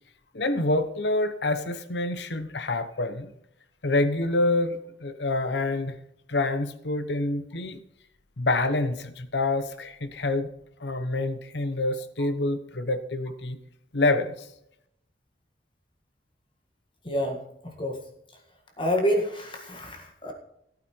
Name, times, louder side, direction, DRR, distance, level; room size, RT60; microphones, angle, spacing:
voice 1, 0.3-3.3 3.8-5.9 6.3-7.8 8.4-10.5 10.8-13.6 13.9-14.3, left 2 dB, 75° left, 11 dB, 1.1 m, -27 dB
voice 2, 17.0-18.0 18.8-20.3, equal, 30° left, 2 dB, 1.8 m, -28 dB
15.5 x 9.2 x 4.6 m, 0.77 s
head